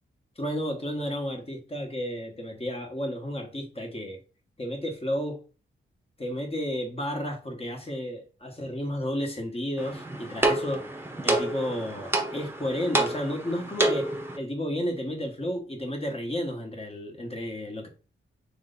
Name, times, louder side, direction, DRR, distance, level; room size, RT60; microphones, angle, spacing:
voice 1, 0.4-4.2 4.6-5.4 6.2-10.9 11.2-17.9, equal, 30° left, 1.4 m, -32 dB
sound 1, 9.8-14.4, right 2 dB, 10° right, 0.9 m, -28 dB
3.3 x 3.2 x 4.0 m
cardioid pair, 75°, 21 cm